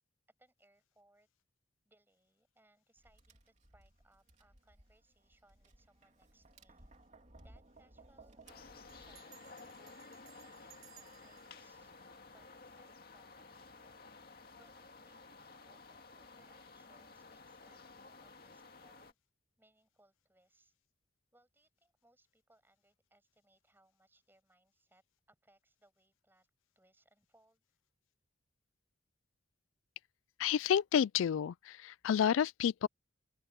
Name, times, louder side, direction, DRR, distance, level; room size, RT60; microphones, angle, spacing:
voice 1, 0.4-1.3 1.8-6.9 7.4-12.0 12.3-14.0 14.3-19.2 19.6-20.7 21.3-25.0 25.3-26.5 26.7-27.6, right 1 dB, 10° right, 6.2 m, -70 dB
Tap, 3.0-9.2, right 2 dB, 35° right, 3.4 m, -61 dB
sound 1, 8.5-19.1, left 4 dB, 50° left, 2.2 m, -55 dB
Bell, 8.9-13.0, right 15 dB, 90° right, 2.7 m, -63 dB
voice 2, 30.4-32.9, left 8 dB, 80° left, 0.3 m, -30 dB
open air
head